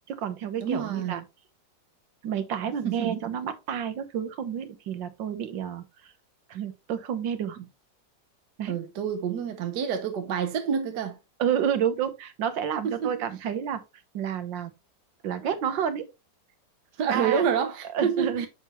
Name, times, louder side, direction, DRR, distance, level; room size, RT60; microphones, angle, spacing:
voice 1, 0.1-1.2 2.2-5.8 6.5-7.6 8.6-8.8 11.4-13.8 14.1-14.7 15.2-16.1 17.1-17.4 17.9-18.5, right 8 dB, 90° right, 1.7 m, -29 dB
voice 2, 0.6-1.2 2.8-3.1 7.6-7.7 8.6-11.2 12.8-13.2 17.0-18.5, right 7 dB, 70° right, 1.5 m, -28 dB
7.0 x 5.6 x 3.0 m
omnidirectional pair, 1.9 m